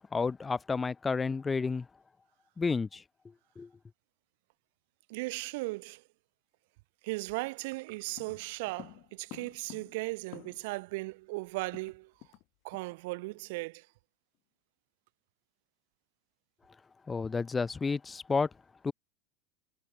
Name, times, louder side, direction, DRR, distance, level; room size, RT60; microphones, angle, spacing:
voice 1, 0.1-1.9 2.6-3.0 3.6-3.7 17.1-18.5 18.8-18.9, left 4 dB, 15° left, 1.1 m, -31 dB
voice 2, 5.1-6.0 7.0-12.1 12.6-13.9, right 24 dB, 65° right, 0.8 m, -37 dB
sound 1, 8.2-10.8 11.1-11.2 11.4-12.5 12.7-12.9 13.3-13.5, left 22 dB, 50° left, 2.4 m, -51 dB
supercardioid pair, 140°, 0 cm